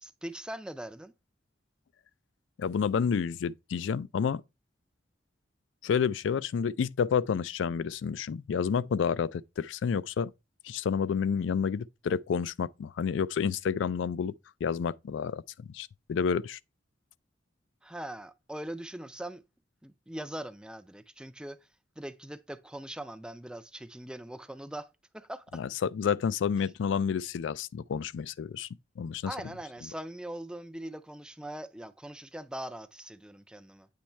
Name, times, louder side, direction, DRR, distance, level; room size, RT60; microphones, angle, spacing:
voice 1, 0.0-1.1 17.8-19.4 19.8-21.6 22.0-25.6 29.2-33.9, right 1 dB, 5° right, 0.4 m, -41 dB
voice 2, 2.6-4.4 5.8-10.3 10.6-14.3 14.6-16.6 25.5-28.7 29.0-29.3, left 6 dB, 80° left, 0.3 m, -30 dB
8.5 x 3.1 x 4.4 m
head